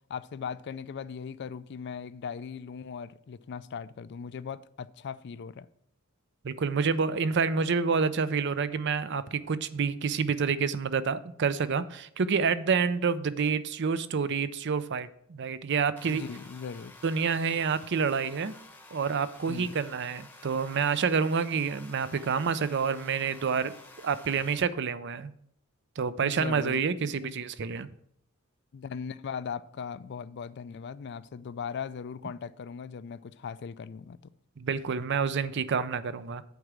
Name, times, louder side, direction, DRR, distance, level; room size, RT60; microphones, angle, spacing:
voice 1, 0.1-5.7 16.1-16.9 19.5-19.8 26.2-26.8 27.1-27.3 28.7-34.2, left 6 dB, 50° left, 0.4 m, -39 dB
voice 2, 6.4-16.2 17.0-18.5 18.9-23.7 24.0-25.3 26.0-27.9 34.6-36.4, right 5 dB, 55° right, 0.5 m, -28 dB
sound 1, 16.0-24.6, left 2 dB, 10° left, 0.9 m, -51 dB
8.1 x 4.8 x 7.4 m
head